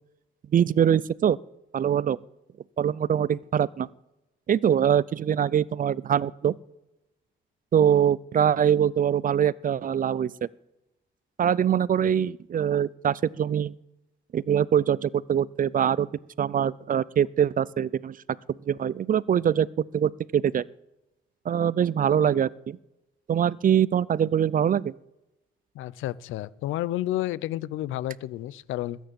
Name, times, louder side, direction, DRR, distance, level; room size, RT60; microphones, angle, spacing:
voice 1, 0.5-1.4 1.7-2.2 2.8-3.9 4.5-6.6 7.7-10.5 11.4-13.7 14.3-16.1 16.4-18.2 18.7-20.7 21.5-22.8 23.3-24.9, right 9 dB, 45° right, 22 dB, 0.5 m, -23 dB
voice 2, 25.7-29.0, left 14 dB, 90° left, 21 dB, 0.6 m, -31 dB
20.5 x 9.2 x 7.7 m, 0.95 s
cardioid pair, 90°, 20 cm